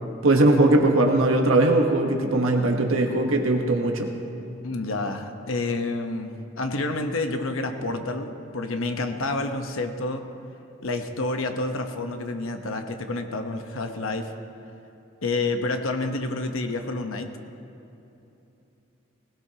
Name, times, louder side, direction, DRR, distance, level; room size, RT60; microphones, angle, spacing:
voice 1, 0.2-4.1, right 2 dB, 85° right, 2 dB, 1.1 m, -20 dB
voice 2, 4.6-10.3 10.8-14.3 15.2-17.3, left 2 dB, 80° left, 6 dB, 1.0 m, -29 dB
19.5 x 17.0 x 2.9 m, 2.9 s
head